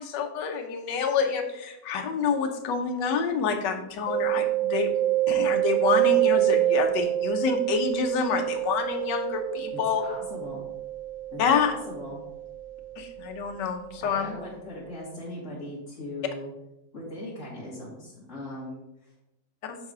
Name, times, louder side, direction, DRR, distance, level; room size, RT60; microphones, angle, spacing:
voice 1, 0.0-4.9 5.3-10.0 11.4-11.7 13.0-14.3 19.6-19.8, left 6 dB, 80° left, 4 dB, 1.5 m, -27 dB
Mallet percussion, 4.1-13.6, right 14 dB, 85° right, 1.9 m, -27 dB
voice 2, 9.7-10.7 11.3-12.2 14.0-16.5 16.9-19.1, left 1 dB, 45° left, -7 dB, 1.8 m, -39 dB
6.9 x 4.0 x 4.8 m, 0.89 s
omnidirectional pair, 1.9 m